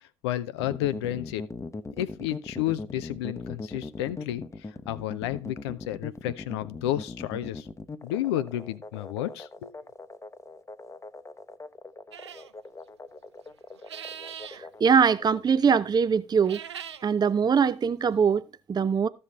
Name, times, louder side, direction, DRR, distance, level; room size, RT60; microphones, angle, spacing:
voice 1, 0.2-1.4 2.0-4.4 4.9-7.7 8.0-9.8, left 13 dB, 75° left, 0.6 m, -31 dB
sound 1, 0.6-15.4, left 3 dB, 20° left, 0.9 m, -40 dB
sound 2, 12.1-12.5 13.8-14.6 16.3-17.1, right 8 dB, 90° right, 0.4 m, -41 dB
voice 2, 14.8-16.6 17.0-19.1, right 6 dB, 30° right, 0.5 m, -22 dB
13.5 x 5.5 x 4.1 m
figure-of-eight pair, 50°, 14 cm